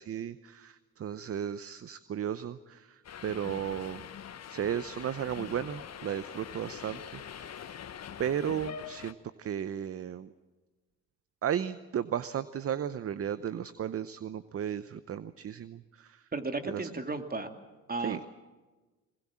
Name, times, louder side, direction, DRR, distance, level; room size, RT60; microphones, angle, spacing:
voice 1, 0.0-4.1 4.5-7.8 8.2-10.3 11.4-16.3 16.6-16.9 18.0-18.2, right 9 dB, 45° right, 15 dB, 0.8 m, -35 dB
Subway metro underground, 3.0-9.1, left 8 dB, 50° left, 1.2 m, -44 dB
voice 2, 16.3-17.5 17.9-18.2, right 3 dB, 30° right, 7 dB, 2.5 m, -34 dB
22.0 x 20.5 x 7.5 m, 1.2 s
supercardioid pair, 65°, 32 cm